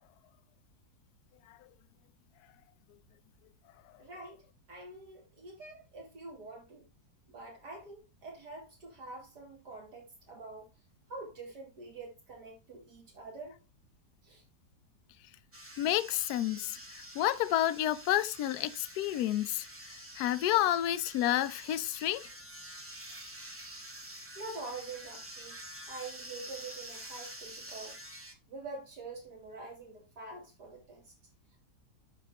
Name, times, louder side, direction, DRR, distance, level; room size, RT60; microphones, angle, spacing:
voice 1, 4.0-6.9 7.3-10.7 11.1-13.6 14.2-14.4 24.4-25.6 25.9-28.0 28.5-31.0, right 3 dB, 70° right, 3.9 m, -46 dB
sound 1, 15.5-28.3, right 1 dB, 10° right, 0.8 m, -48 dB
voice 2, 15.8-22.3, left 13 dB, 70° left, 1.1 m, -30 dB
12.5 x 4.5 x 2.9 m
omnidirectional pair, 1.8 m